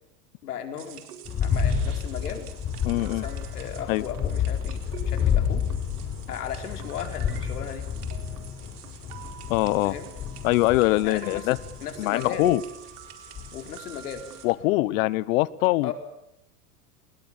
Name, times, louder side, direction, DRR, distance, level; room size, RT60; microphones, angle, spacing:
voice 1, 0.4-1.0 1.4-2.5 3.0-5.6 6.3-7.8 9.8-10.1 11.0-12.5 13.5-14.2 15.8-15.9, left 8 dB, 85° left, 7 dB, 4.7 m, -36 dB
sound 1, 0.8-14.5, right 9 dB, 80° right, 4.5 m, -45 dB
sound 2, 1.2-12.6 13.3-13.7 14.2-14.3, left 7 dB, 30° left, 5.7 m, -30 dB
voice 2, 2.8-3.2 3.9-4.0 9.5-9.9 10.4-11.6 12.0-12.6 14.4-15.9, left 19 dB, 60° left, 21 dB, 1.2 m, -23 dB
28.0 x 21.0 x 7.4 m, 0.81 s
hypercardioid pair, 110°, 45 cm